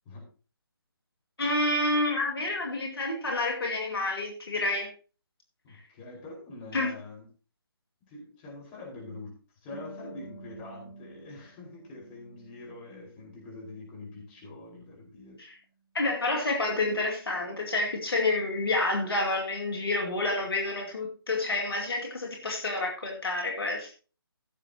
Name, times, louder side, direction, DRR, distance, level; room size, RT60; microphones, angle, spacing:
voice 1, 1.4-4.9 6.7-6.9 15.4-15.5 15.9-23.9, left 2 dB, 70° left, 1 dB, 2.4 m, -29 dB
voice 2, 5.6-7.3 8.0-9.4 9.6-15.4 18.5-18.6, left 2 dB, 20° left, -2 dB, 5.0 m, -44 dB
Harp, 9.7-13.1 13.4-14.5, right 1 dB, ahead, 4.6 m, -50 dB
16.0 x 7.6 x 2.9 m, 0.35 s
figure-of-eight pair, 150°, 13 cm